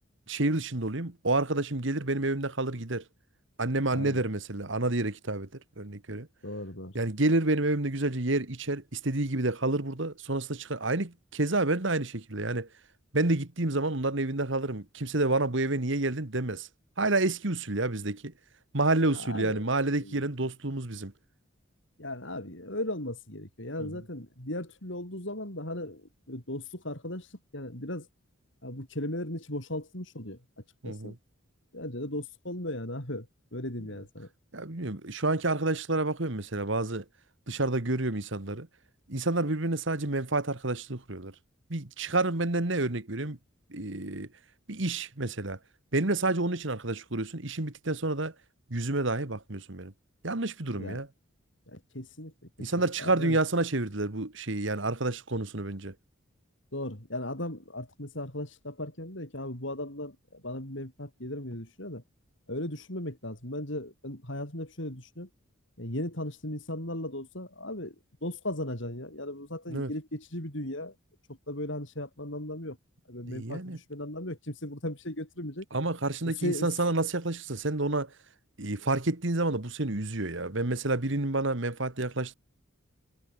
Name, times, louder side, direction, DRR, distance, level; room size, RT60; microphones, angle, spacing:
voice 1, 0.3-3.0 3.6-5.5 5.8-6.3 6.9-12.7 13.1-16.7 17.0-18.3 18.7-21.1 23.8-23.9 30.8-31.1 34.5-37.0 37.5-38.7 39.1-41.3 41.7-43.4 43.7-44.3 44.7-45.6 45.9-48.3 48.7-49.9 50.2-51.1 52.6-55.9 69.7-69.9 73.3-73.8 75.7-78.1 78.6-82.3, right 2 dB, 60° right, 1.8 m, -29 dB
voice 2, 6.4-6.9 19.1-19.6 20.0-20.3 22.0-27.3 27.5-28.1 28.6-30.4 30.8-31.2 31.7-33.3 33.5-34.3 50.8-51.0 51.7-52.3 52.6-52.7 53.0-53.4 56.7-62.0 62.5-65.3 65.8-68.0 68.2-70.9 71.5-72.8 73.1-75.7 76.2-76.7, left 1 dB, 60° left, 5.6 m, -37 dB
head